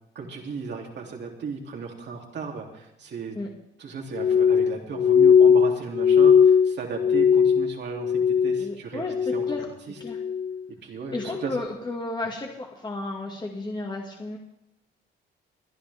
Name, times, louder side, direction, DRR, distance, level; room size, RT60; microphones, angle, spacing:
voice 1, 0.1-3.4 3.8-9.6 9.9-10.0 10.8-11.6, right 5 dB, 60° right, 0 dB, 3.2 m, -35 dB
Glass, 4.1-8.7 9.0-9.7 10.1-10.6 11.2-11.5, left 7 dB, 45° left, 0.5 m, -19 dB
voice 2, 8.6-9.7 10.0-10.2 11.1-14.4, left 2 dB, 20° left, 0 dB, 2.2 m, -33 dB
26.5 x 10.5 x 3.6 m, 0.84 s
cardioid pair, 90°, 20 cm